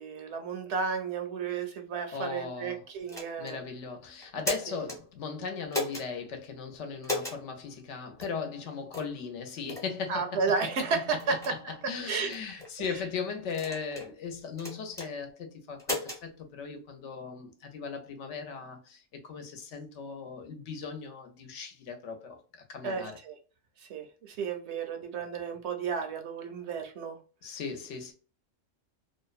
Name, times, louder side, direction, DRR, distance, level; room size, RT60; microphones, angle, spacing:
voice 1, 0.0-3.6 4.7-4.8 10.1-11.7 12.1-12.3 12.8-12.9 22.8-23.4 23.9-27.2, right 5 dB, 70° right, 0.8 m, -32 dB
voice 2, 2.1-2.9 3.4-23.2 27.4-28.1, left 5 dB, 70° left, 0.9 m, -38 dB
sound 1, 3.1-3.6 4.2-5.0 5.7-6.1 7.0-7.4 8.2-8.3 8.9-9.1 9.7-9.9 10.5-10.6 11.2-11.5 12.3-12.7 13.5-14.1 14.6-15.1 15.8-16.2, left 2 dB, 5° left, 0.6 m, -35 dB
2.7 x 2.1 x 2.3 m
omnidirectional pair, 1.3 m